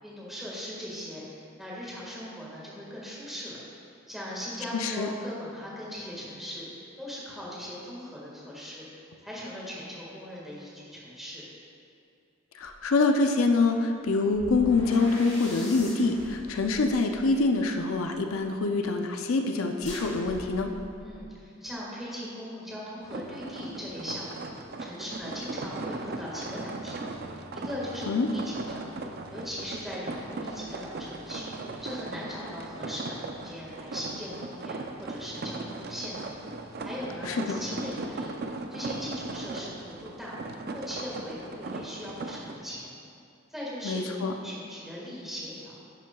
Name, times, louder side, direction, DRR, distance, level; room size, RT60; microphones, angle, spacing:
voice 1, 0.0-3.6 4.1-6.7 7.0-8.8 9.2-11.4 21.0-24.5 24.8-27.1 27.5-28.9 29.3-31.5 31.8-36.5 36.8-38.3 38.7-40.3 40.7-42.9 43.5-45.7, equal, ahead, -6 dB, 1.7 m, -39 dB
voice 2, 4.7-5.1 12.6-20.7 28.1-28.3 37.3-37.6 43.8-44.3, left 3 dB, 85° left, 5 dB, 0.5 m, -25 dB
sound 1, 12.6-12.8 14.3-18.4 19.8-21.2, left 1 dB, 35° left, 1.8 m, -43 dB
sound 2, 23.0-42.6, right 2 dB, 50° right, 0.4 m, -38 dB
11.0 x 7.4 x 2.3 m, 2.4 s
head